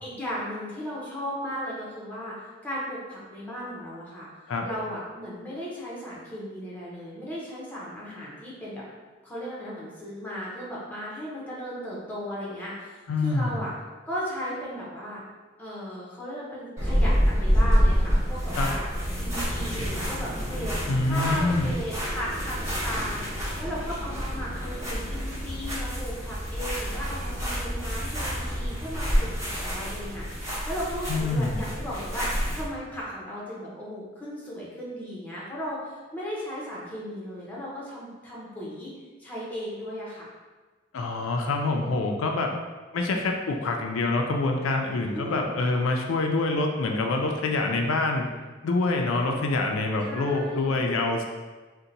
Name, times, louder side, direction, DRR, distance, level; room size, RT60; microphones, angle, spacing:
voice 1, 0.0-2.3 2.6-4.3 4.6-8.8 9.2-13.7 14.0-15.2 15.6-18.8 19.2-20.8 21.0-23.3 23.6-38.9 39.2-40.3 45.1-45.5 47.3-47.5 50.0-50.8, equal, 10° left, -6 dB, 0.7 m, -36 dB
voice 2, 13.1-13.6 18.5-18.7 20.9-21.7 31.1-31.6 40.9-42.5 42.9-48.3 48.6-51.2, left 3 dB, 85° left, 2 dB, 0.4 m, -26 dB
sound 1, 16.8-32.6, equal, 15° right, 1.0 m, -28 dB
2.7 x 2.1 x 3.8 m, 1.3 s
head